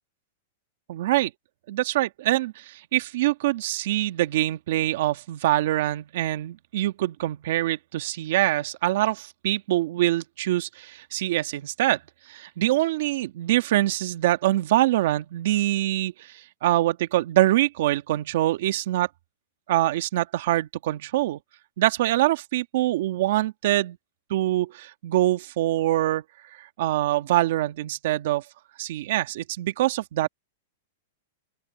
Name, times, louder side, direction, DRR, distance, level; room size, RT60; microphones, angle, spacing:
voice 1, 0.9-1.3 1.7-12.0 12.3-19.1 19.7-21.4 21.8-24.0 24.3-26.2 26.8-28.4 28.8-30.3, right 15 dB, 60° right, 1.9 m, -24 dB
open air
supercardioid pair, 160°, 0 cm